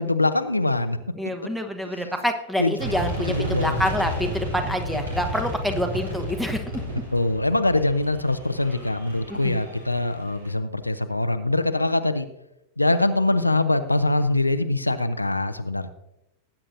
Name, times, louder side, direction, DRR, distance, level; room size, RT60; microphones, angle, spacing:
voice 1, 0.0-1.0 1.9-2.1 2.6-2.7 3.3-3.8 7.1-12.3 12.8-15.9, left 2 dB, 85° left, 9 dB, 0.6 m, -23 dB
voice 2, 1.2-6.8 9.3-9.6, left 1 dB, 5° right, 7 dB, 1.2 m, -27 dB
sound 1, 2.8-10.5, equal, 70° right, 3.6 m, -32 dB
19.0 x 8.8 x 2.7 m, 0.87 s
figure-of-eight pair, 90°, 0 cm